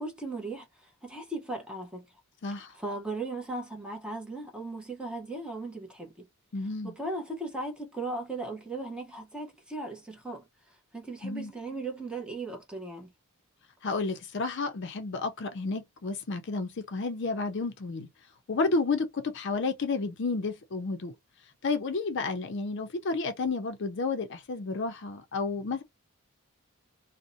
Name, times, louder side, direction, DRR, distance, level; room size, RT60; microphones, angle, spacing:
voice 1, 0.0-2.1 2.7-6.3 6.8-10.5 10.9-13.1, right 2 dB, 5° right, 0.7 m, -37 dB
voice 2, 6.5-6.9 11.2-11.5 13.8-18.1 18.5-21.1 21.6-25.8, left 3 dB, 55° left, 0.5 m, -31 dB
2.6 x 2.0 x 2.5 m
head